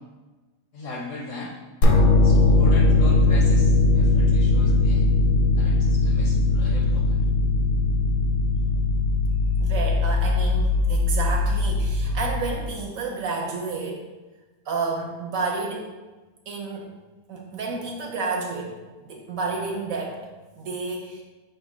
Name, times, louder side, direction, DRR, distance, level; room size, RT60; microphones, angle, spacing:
voice 1, 0.7-1.6 2.2-5.0 5.6-7.3, left 2 dB, 70° left, 0 dB, 0.8 m, -38 dB
sound 1, 1.8-12.8, left 2 dB, 85° left, 1.2 m, -20 dB
voice 2, 9.6-14.0 14.6-15.9 16.5-16.9 17.3-18.8 19.0-20.3 20.6-21.2, right 4 dB, 65° right, -1 dB, 1.0 m, -30 dB
5.0 x 2.1 x 4.7 m, 1.2 s
omnidirectional pair, 1.7 m